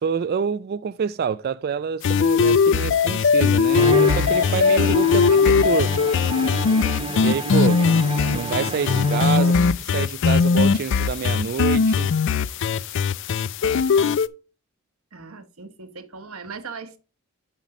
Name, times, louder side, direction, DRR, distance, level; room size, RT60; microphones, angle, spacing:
voice 1, 0.0-6.0 7.2-7.8 8.3-9.5 9.9-12.1, right 6 dB, 45° right, 0.3 m, -27 dB
sound 1, 2.0-14.3, left 5 dB, 55° left, 0.4 m, -19 dB
Bowed string instrument, 3.7-9.7, right 2 dB, 25° right, 1.0 m, -30 dB
voice 2, 9.3-9.7 15.1-17.0, right 4 dB, 70° right, 1.1 m, -38 dB
7.4 x 5.3 x 4.8 m
head